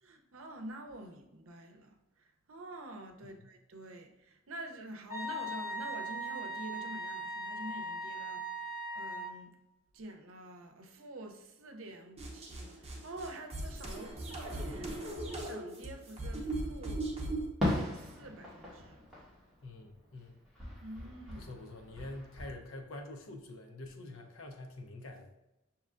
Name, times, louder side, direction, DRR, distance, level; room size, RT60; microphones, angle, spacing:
voice 1, 0.0-9.5 9.9-15.2 15.4-17.1 17.6-19.0 20.8-21.5, right 1 dB, 80° right, 4 dB, 0.6 m, -47 dB
Wind instrument woodwind instrument, 5.1-9.4, right 1 dB, 40° left, 1.5 m, -39 dB
sound 1, 12.2-17.5, right 2 dB, 30° right, 0.8 m, -39 dB
Fireworks, 17.6-20.2 20.5-22.5, left 1 dB, ahead, 1.3 m, -38 dB
voice 2, 19.6-20.4 21.4-25.3, left 2 dB, 75° left, 3 dB, 0.7 m, -46 dB
6.5 x 2.9 x 2.5 m, 0.99 s
head